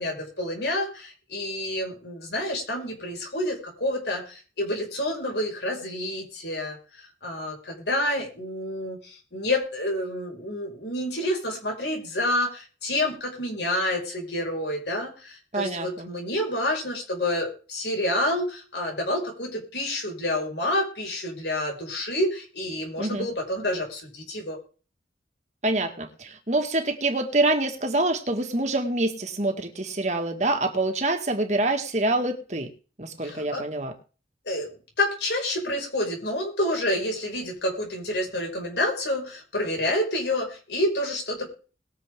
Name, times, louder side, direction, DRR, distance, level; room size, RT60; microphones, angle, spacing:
voice 1, 0.0-24.6 33.2-33.6 34.5-34.7 35.0-41.5, left 1 dB, 80° left, 1 dB, 5.5 m, -28 dB
voice 2, 15.5-16.1 23.0-23.3 25.6-32.7 33.0-33.9, right 2 dB, 40° right, 4 dB, 2.0 m, -26 dB
21.5 x 7.5 x 3.7 m, 0.37 s
head